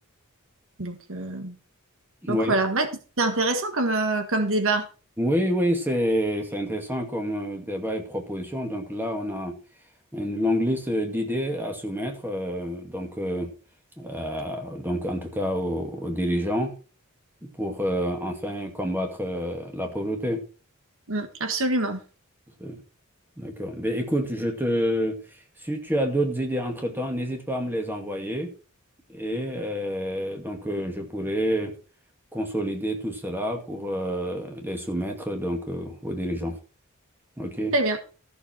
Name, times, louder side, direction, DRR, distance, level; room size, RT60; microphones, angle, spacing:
voice 1, 0.8-1.6 2.3-2.9 3.2-4.9 21.1-22.0 37.7-38.0, right 2 dB, 65° right, 7 dB, 1.6 m, -25 dB
voice 2, 2.2-2.6 5.2-9.5 10.1-13.5 14.0-16.7 17.4-20.4 22.6-22.8 23.4-25.2 25.6-28.5 29.1-31.7 32.3-36.6 37.4-37.7, equal, 10° right, 3 dB, 2.2 m, -28 dB
14.0 x 6.9 x 4.5 m, 0.35 s
head